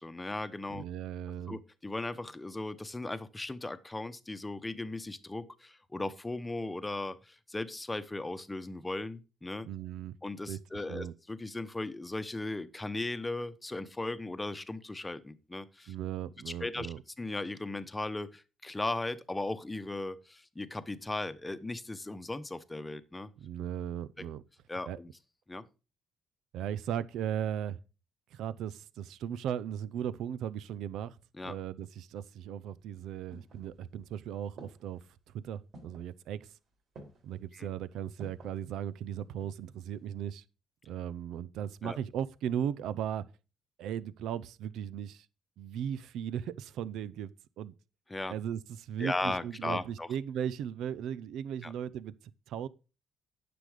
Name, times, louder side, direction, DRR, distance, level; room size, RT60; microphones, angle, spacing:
voice 1, 0.0-0.8 1.5-9.7 10.2-15.9 16.5-23.3 24.7-25.1 25.5-25.6 31.4-31.5 37.5-37.7 41.8-42.0 48.1-48.3 49.0-50.1 51.6-51.7, left 2 dB, 15° left, 0.9 m, -37 dB
voice 2, 0.7-1.6 9.6-10.1 10.5-10.6 10.9-11.1 15.9-17.0 23.4-24.4 24.9-25.0 26.5-27.8 28.3-31.2 31.4-35.0 35.3-36.5 37.2-40.4 40.9-43.2 43.8-45.3 45.6-47.7 48.3-52.1 52.5-52.7, right 9 dB, 85° right, 0.6 m, -37 dB
sound 1, 32.8-34.1 34.6-35.1 35.7-36.1 36.9-37.4 38.2-38.6 39.1-39.7 40.0-40.1, right 2 dB, 70° right, 4.2 m, -52 dB
9.9 x 6.9 x 5.0 m
cardioid pair, 90°, 0 cm